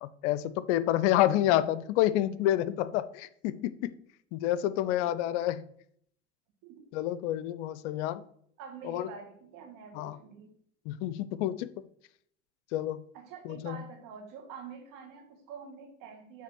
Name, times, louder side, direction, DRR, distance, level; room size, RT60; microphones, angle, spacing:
voice 1, 0.0-3.9 4.3-5.6 6.9-8.2 8.8-9.1 9.9-10.2 10.9-11.7 12.7-13.0 13.5-13.8, left 13 dB, 75° left, 15 dB, 0.5 m, -28 dB
voice 2, 4.6-5.4 6.6-6.9 8.6-10.5 13.1-16.4, right 6 dB, 65° right, 5 dB, 1.7 m, -47 dB
6.6 x 3.3 x 6.0 m, 0.67 s
hypercardioid pair, 80°, 35 cm